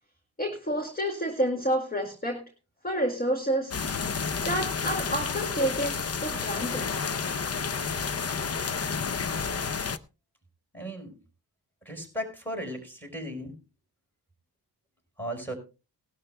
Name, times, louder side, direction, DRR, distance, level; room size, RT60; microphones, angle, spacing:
voice 1, 0.4-2.4 2.8-3.7 4.4-6.9, right 1 dB, 20° left, 3 dB, 2.0 m, -29 dB
sound 1, 3.7-10.0, left 5 dB, 40° left, 0.6 m, -30 dB
voice 2, 10.7-11.1 11.8-13.5 15.2-15.5, equal, 5° left, 3 dB, 4.9 m, -36 dB
19.0 x 12.0 x 2.2 m, 0.30 s
wide cardioid pair, 90°, 41 cm